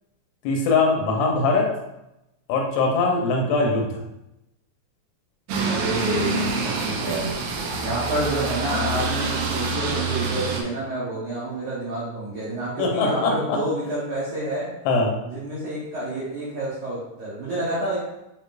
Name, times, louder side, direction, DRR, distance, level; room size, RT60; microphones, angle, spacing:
voice 1, 0.4-1.7 2.5-4.0 12.8-13.6 14.9-15.1, left 3 dB, 80° left, 1 dB, 3.3 m, -21 dB
sound 1, 5.5-10.6, right 3 dB, 90° right, 2.1 m, -26 dB
voice 2, 5.6-7.3 7.8-14.7 15.2-18.0, right 1 dB, 75° right, -9 dB, 1.8 m, -29 dB
9.6 x 3.7 x 2.6 m, 0.89 s
omnidirectional pair, 5.6 m